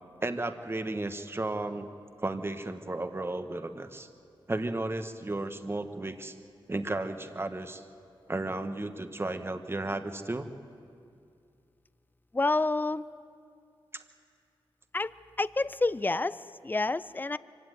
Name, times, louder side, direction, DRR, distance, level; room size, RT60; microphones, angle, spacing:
voice 1, 0.2-1.9 2.2-4.1 4.5-6.3 6.7-7.8 8.3-10.5 13.9-14.0, right 2 dB, 25° right, 8 dB, 1.4 m, -34 dB
voice 2, 12.3-13.0 14.9-15.1 15.4-17.4, left 2 dB, 20° left, 17 dB, 0.5 m, -28 dB
24.5 x 16.5 x 9.4 m, 2.4 s
cardioid pair, 70°, 10 cm